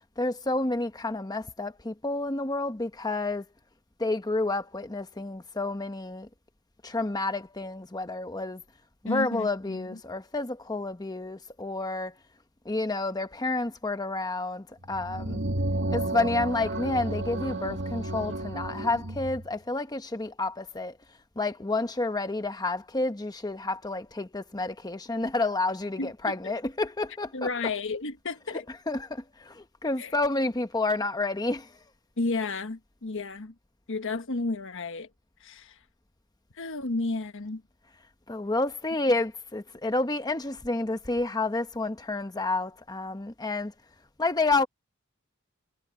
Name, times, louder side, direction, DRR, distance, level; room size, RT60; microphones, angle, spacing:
voice 1, 0.2-3.4 4.0-6.3 6.8-8.6 9.0-12.1 12.6-15.4 15.9-21.0 21.4-27.5 28.5-31.8 38.3-43.7 44.2-44.7, left 2 dB, 20° left, 1.0 m, -30 dB
voice 2, 9.1-10.0 26.0-26.3 27.3-28.6 30.0-30.1 32.2-33.5 33.9-35.1 35.4-35.8 36.5-37.6, left 3 dB, 60° left, 1.3 m, -32 dB
sound 1, 14.8-19.5, right 1 dB, 55° right, 1.9 m, -32 dB
head